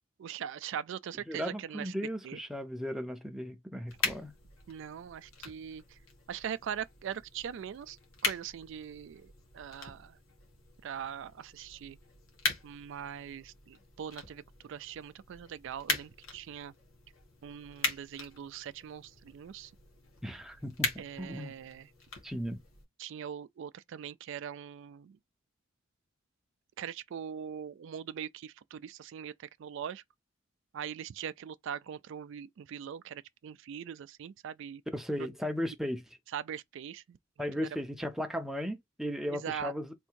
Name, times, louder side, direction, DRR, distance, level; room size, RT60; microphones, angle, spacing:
voice 1, 0.2-1.9 2.2-2.4 4.7-6.0 6.3-10.2 10.8-12.0 12.6-16.7 17.4-19.7 21.0-21.9 23.0-25.2 26.8-30.0 30.7-34.8 36.3-37.7 39.3-39.7, right 8 dB, 60° right, 0.3 m, -41 dB
voice 2, 1.3-4.3 20.2-21.5 22.2-22.6 34.9-36.0 37.4-39.9, equal, ahead, 0.5 m, -36 dB
sound 1, 3.9-22.8, left 4 dB, 80° left, 1.5 m, -41 dB
3.5 x 2.6 x 4.4 m
head